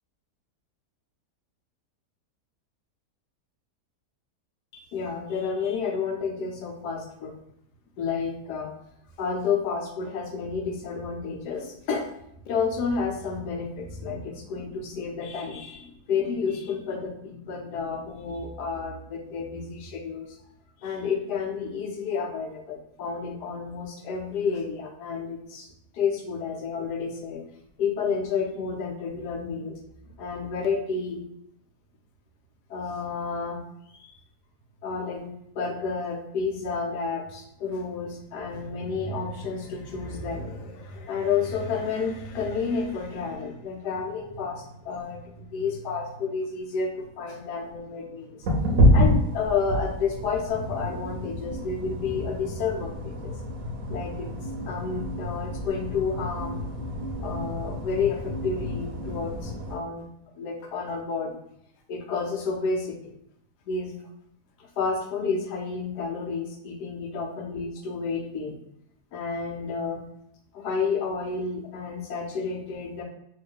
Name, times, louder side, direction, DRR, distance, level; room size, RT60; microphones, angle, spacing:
voice 1, 4.7-7.3 8.0-8.7 9.2-12.1 12.4-20.4 20.8-27.4 27.8-29.7 30.2-31.2 32.7-33.6 33.9-34.1 34.8-48.5 48.9-53.3 53.9-54.3 54.7-56.6 57.2-60.0 60.4-61.4 61.9-63.1 63.7-63.9 64.6-68.6 69.1-70.0 70.5-73.0, left 5 dB, 80° left, 2 dB, 1.2 m, -30 dB
sound 1, 48.4-59.7, equal, 65° right, 0.9 m, -27 dB
3.1 x 2.4 x 3.4 m, 0.75 s
omnidirectional pair, 1.7 m